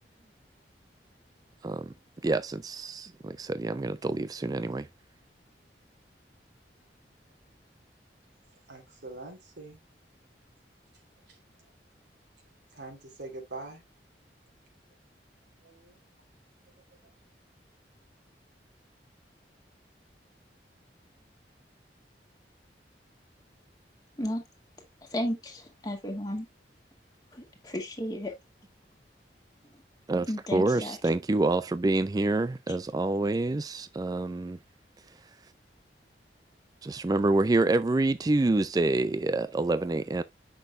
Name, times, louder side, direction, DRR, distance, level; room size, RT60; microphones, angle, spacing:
voice 1, 2.2-4.9 30.1-34.6 36.8-40.2, right 2 dB, 20° right, 0.3 m, -27 dB
voice 2, 8.7-9.8 12.7-13.8 15.6-15.9, right 2 dB, 85° right, 3.1 m, -43 dB
voice 3, 25.1-26.5 27.3-28.3 30.3-31.0, equal, 20° left, 2.1 m, -33 dB
7.8 x 6.1 x 2.4 m
head